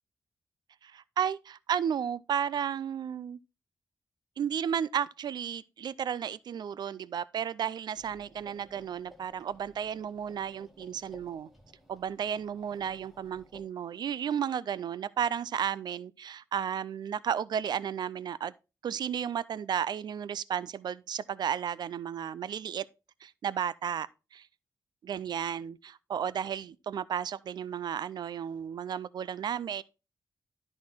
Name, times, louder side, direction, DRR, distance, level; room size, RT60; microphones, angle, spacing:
voice 1, 0.8-3.4 4.4-11.5 11.9-18.5 18.8-22.8 23.2-24.5 25.0-29.8, right 8 dB, 75° right, 0.4 m, -33 dB
sound 1, 7.9-13.6, equal, 5° right, 2.2 m, -57 dB
12.5 x 4.3 x 4.5 m
wide cardioid pair, 115°, 7 cm